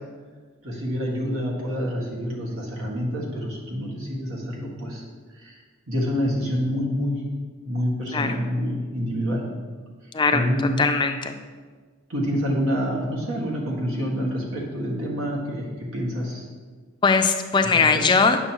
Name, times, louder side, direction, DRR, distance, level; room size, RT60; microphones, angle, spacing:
voice 1, 0.6-5.0 5.4-5.6 5.9-7.2 7.6-9.4 10.3-10.8 12.1-16.5 17.9-18.0, equal, 85° right, -3 dB, 1.8 m, -27 dB
voice 2, 10.1-10.4 10.8-11.3 17.0-18.4, left 4 dB, 20° left, 7 dB, 0.3 m, -20 dB
9.0 x 6.2 x 3.0 m, 1.5 s
head